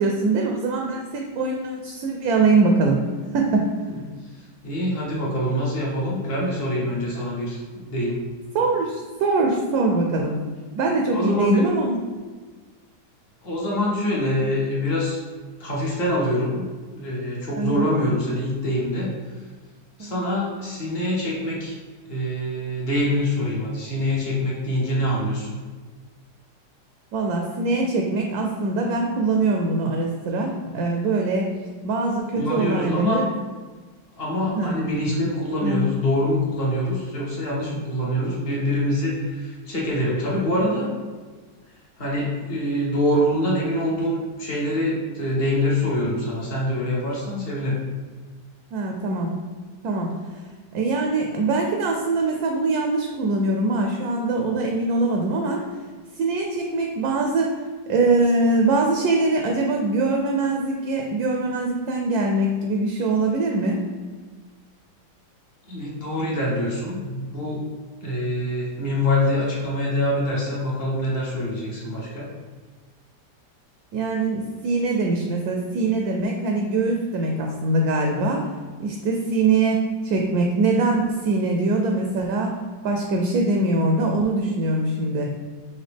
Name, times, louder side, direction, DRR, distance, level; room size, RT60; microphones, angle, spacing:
voice 1, 0.0-3.1 3.3-3.7 8.5-10.4 10.8-12.0 17.6-17.9 20.0-20.2 27.1-31.5 31.8-33.2 34.5-34.7 35.6-35.8 48.7-49.3 49.8-50.1 50.7-55.6 56.2-57.5 57.9-63.8 73.9-78.5 78.8-82.6 82.8-85.3, right 3 dB, 70° right, 2 dB, 1.0 m, -22 dB
voice 2, 4.6-8.2 11.1-11.7 13.4-15.2 15.6-16.6 16.9-19.1 20.0-21.8 22.1-25.6 32.3-33.2 34.2-40.9 42.0-47.8 65.7-67.6 68.0-72.3, left 1 dB, 45° left, -4 dB, 0.9 m, -25 dB
5.7 x 2.8 x 3.4 m, 1.4 s
omnidirectional pair, 1.8 m